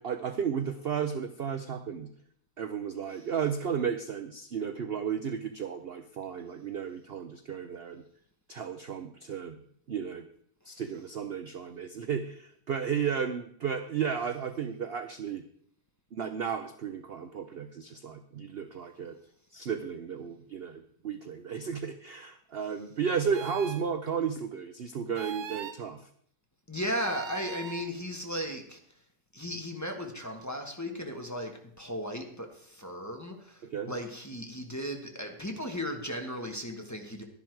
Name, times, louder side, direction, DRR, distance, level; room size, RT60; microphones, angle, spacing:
voice 1, 0.0-2.1 2.6-8.0 8.5-9.6 9.9-10.3 10.7-15.4 16.1-19.1 19.5-26.0 33.6-33.9, right 7 dB, 55° right, 9 dB, 0.7 m, -33 dB
sound 1, 23.3-23.8 25.1-25.8 27.0-27.9, right 8 dB, 70° right, 1.2 m, -41 dB
voice 2, 26.7-28.8 29.3-31.5 31.8-37.2, equal, 10° left, 3 dB, 1.3 m, -36 dB
12.0 x 11.0 x 4.6 m, 0.65 s
omnidirectional pair, 1.7 m